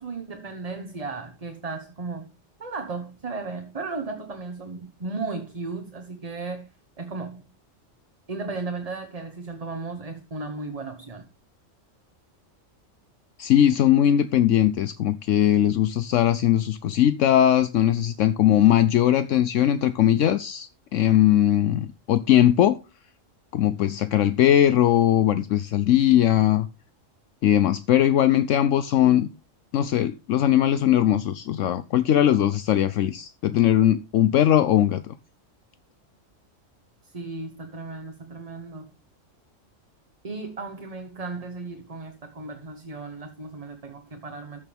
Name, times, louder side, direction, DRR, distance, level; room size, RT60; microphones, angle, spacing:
voice 1, 0.0-2.3 2.6-6.7 7.0-7.5 8.3-11.3 37.0-38.9 40.2-44.7, right 3 dB, 30° right, 1.2 m, -35 dB
voice 2, 13.4-22.8 23.5-26.7 27.4-29.3 29.7-35.1, left 11 dB, 75° left, 1.0 m, -20 dB
14.0 x 6.9 x 3.5 m
omnidirectional pair, 1.3 m